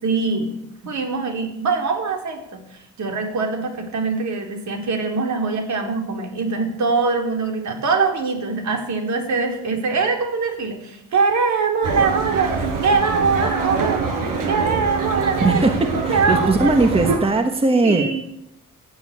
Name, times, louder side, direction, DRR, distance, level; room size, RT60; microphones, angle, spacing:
voice 1, 0.0-0.6 0.8-2.6 3.0-14.0 14.5-15.6 16.1-16.7 17.8-18.2, right 4 dB, 60° right, 3 dB, 3.9 m, -22 dB
sound 1, 11.8-17.2, right 4 dB, 75° right, 5.3 m, -24 dB
voice 2, 15.4-18.1, right 3 dB, 15° right, 6 dB, 1.4 m, -19 dB
17.5 x 8.8 x 8.7 m, 0.80 s
cardioid pair, 130°, 33 cm